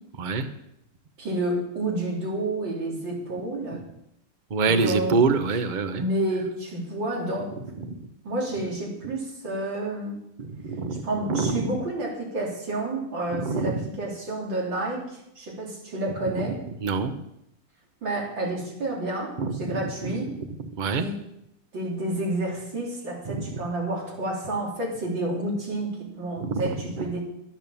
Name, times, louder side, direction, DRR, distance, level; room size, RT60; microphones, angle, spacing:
voice 1, 1.2-3.8 4.6-5.2 5.9-7.5 8.2-10.2 11.0-16.6 18.0-20.3 21.0-21.2 21.7-27.2, right 1 dB, 90° right, -3 dB, 4.0 m, -30 dB
voice 2, 4.5-6.0 7.9-8.0 10.4-11.7 13.4-13.8 16.3-16.4 16.8-17.1 19.4-20.1 20.8-21.1 23.3-23.6 26.4-26.6 27.0-27.1, right 4 dB, 35° right, 9 dB, 0.8 m, -26 dB
12.5 x 8.8 x 7.1 m, 0.80 s
omnidirectional pair, 2.0 m